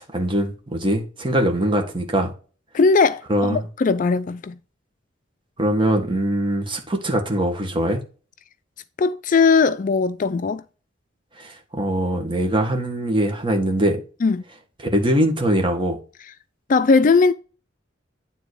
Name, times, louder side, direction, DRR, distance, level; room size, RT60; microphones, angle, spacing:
voice 1, 0.0-2.3 3.3-3.6 5.6-8.0 11.4-14.0 14.8-16.0, right 1 dB, 25° right, 1.8 m, -22 dB
voice 2, 2.7-3.2 3.5-4.6 9.0-10.6 14.2-14.4 16.7-17.3, left 4 dB, 45° left, 0.4 m, -18 dB
9.4 x 3.9 x 4.8 m
head